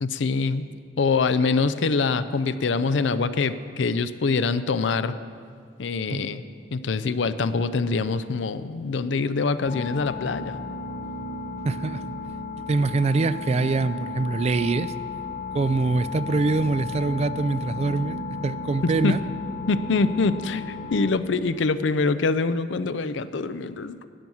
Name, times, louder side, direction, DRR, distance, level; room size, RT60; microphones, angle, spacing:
voice 1, 0.0-0.7 1.0-5.1 5.8-6.4 6.7-10.6 18.8-19.2 19.7-24.1, left 4 dB, 70° left, 13 dB, 0.5 m, -24 dB
sound 1, 9.6-21.1, left 3 dB, 50° left, 0.9 m, -34 dB
voice 2, 11.6-12.0 12.7-14.9 15.5-19.2, right 3 dB, 35° right, 14 dB, 0.3 m, -24 dB
12.5 x 6.2 x 9.1 m, 2.1 s
head